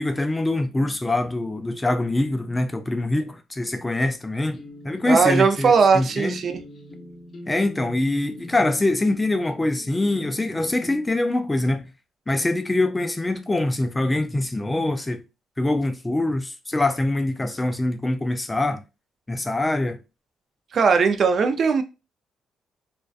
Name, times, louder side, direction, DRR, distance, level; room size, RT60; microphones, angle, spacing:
voice 1, 0.0-4.6 4.8-6.4 7.5-11.9 12.3-15.2 15.6-18.8 19.3-20.0, left 2 dB, 15° left, 0.3 m, -24 dB
sound 1, 4.5-11.0, left 2 dB, 40° left, 0.7 m, -43 dB
voice 2, 5.1-6.6 20.7-21.8, right 5 dB, 55° right, 0.4 m, -19 dB
2.5 x 2.2 x 2.3 m
cardioid pair, 90°, 0 cm